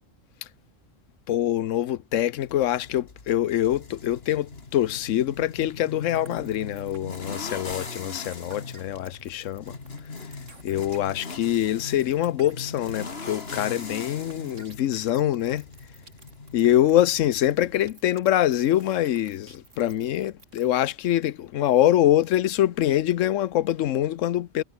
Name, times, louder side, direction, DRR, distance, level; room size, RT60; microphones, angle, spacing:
voice 1, 1.3-9.8 10.6-15.7 16.5-24.6, left 12 dB, 85° left, 1.1 m, -24 dB
sound 1, 2.4-17.9, left 4 dB, 55° left, 2.4 m, -40 dB
sound 2, 6.1-20.8, right 3 dB, 75° right, 3.5 m, -52 dB
omnidirectional pair, 1.3 m